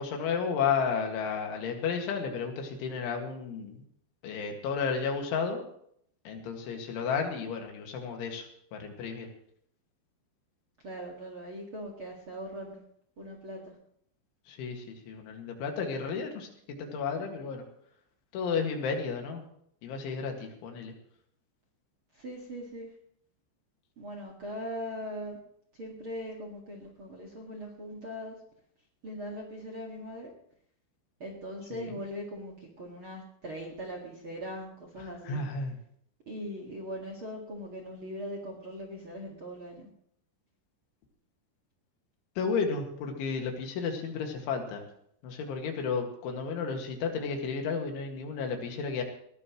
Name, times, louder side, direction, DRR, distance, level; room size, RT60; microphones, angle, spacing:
voice 1, 0.0-3.8 4.2-5.6 6.3-9.3 14.5-17.6 18.3-19.4 19.8-20.9 31.7-32.0 35.0-35.8 42.4-44.9 45.2-49.0, left 5 dB, 90° left, 3 dB, 4.5 m, -33 dB
voice 2, 10.8-12.7 13.2-13.6 22.1-22.9 24.0-25.4 25.8-28.4 29.0-30.3 31.2-35.4 36.3-39.9, equal, 45° right, 0 dB, 1.7 m, -40 dB
20.0 x 18.0 x 3.1 m, 0.68 s
omnidirectional pair, 5.3 m